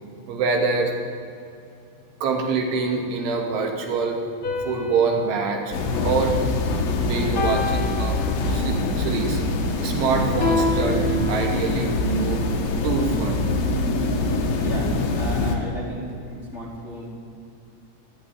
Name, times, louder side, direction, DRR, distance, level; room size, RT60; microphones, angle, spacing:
voice 1, 0.3-0.9 2.2-4.2 4.7-5.7 6.0-6.5 7.0-8.2 8.5-9.4 9.8-12.4 12.8-13.5, right 4 dB, 85° right, 2 dB, 4.9 m, -25 dB
sound 1, 4.4-6.8 7.4-8.8 10.4-11.9, left 2 dB, 30° left, 3.1 m, -29 dB
sound 2, 5.7-15.6, left 2 dB, 80° left, 4.6 m, -24 dB
voice 2, 14.6-17.1, equal, 15° left, -3 dB, 3.4 m, -34 dB
23.0 x 16.0 x 9.7 m, 2.5 s
omnidirectional pair, 5.3 m